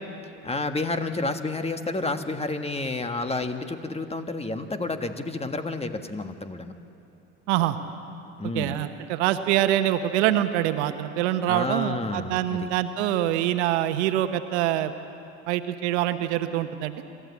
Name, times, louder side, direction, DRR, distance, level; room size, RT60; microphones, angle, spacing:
voice 1, 0.4-6.7 8.4-8.8 11.5-12.7, left 2 dB, 20° left, 8 dB, 1.6 m, -30 dB
voice 2, 8.5-14.9 15.5-16.9, right 12 dB, 80° right, 10 dB, 1.1 m, -25 dB
27.0 x 13.5 x 8.4 m, 2.7 s
hypercardioid pair, 75°, 34 cm